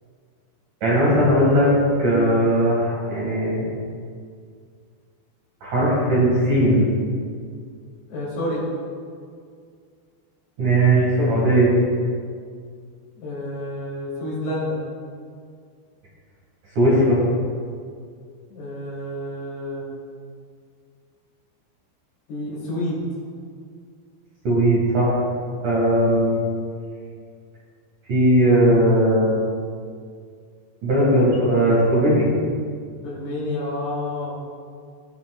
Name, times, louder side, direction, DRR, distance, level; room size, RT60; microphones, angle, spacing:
voice 1, 0.8-1.7 2.0-3.7 5.6-6.9 10.6-11.7 16.8-17.2 24.4-25.2 25.6-26.4 28.1-29.4 30.8-32.3, right 1 dB, 55° right, -6 dB, 2.9 m, -18 dB
voice 2, 8.1-8.7 13.2-14.8 18.5-19.8 22.3-23.0 33.0-34.3, left 1 dB, 65° left, -6 dB, 4.7 m, -29 dB
19.0 x 7.1 x 2.4 m, 2.1 s
omnidirectional pair, 5.2 m